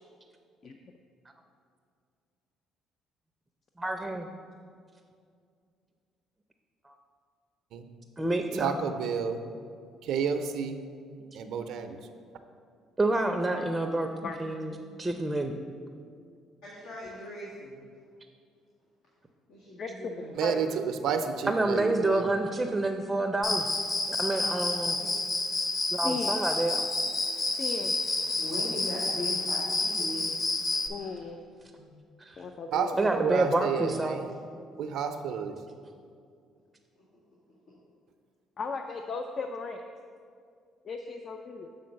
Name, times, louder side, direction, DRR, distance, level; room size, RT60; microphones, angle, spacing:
voice 1, 3.8-4.3 6.8-6.9 8.2-8.7 13.0-14.7 15.0-15.5 21.5-23.7 24.1-25.0 25.9-26.8 32.2-32.4 33.0-34.2, right 2 dB, 15° right, 5 dB, 0.5 m, -28 dB
voice 2, 8.5-9.4 10.0-10.8 11.3-12.0 20.3-22.3 32.7-34.3 34.8-35.6, right 6 dB, 70° right, 7 dB, 0.5 m, -30 dB
voice 3, 16.6-17.7 19.5-20.4 24.6-25.1 25.7-25.8 28.4-30.4 31.0-31.3 31.7-31.9 37.7-37.8, left 1 dB, 85° left, -9 dB, 1.8 m, -40 dB
voice 4, 19.8-20.8 26.0-26.3 27.5-27.9 30.9-31.4 32.4-33.0 38.6-39.8 40.8-41.7, left 4 dB, 45° left, 5 dB, 0.4 m, -36 dB
Cricket, 23.4-30.9, left 2 dB, 30° left, 0.8 m, -29 dB
6.9 x 3.8 x 6.4 m, 2.3 s
supercardioid pair, 80°, 0 cm